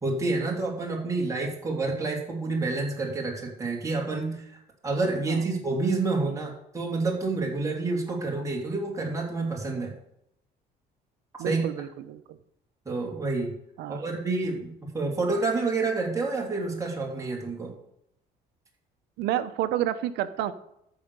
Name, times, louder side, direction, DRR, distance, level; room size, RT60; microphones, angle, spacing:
voice 1, 0.0-9.9 11.4-11.6 12.8-13.6 13.9-17.7, right 3 dB, 20° right, -1 dB, 2.9 m, -28 dB
voice 2, 11.4-12.4 13.8-14.0 19.2-20.5, right 12 dB, 90° right, 12 dB, 0.9 m, -30 dB
13.5 x 5.0 x 6.8 m, 0.77 s
cardioid pair, 110°, 17 cm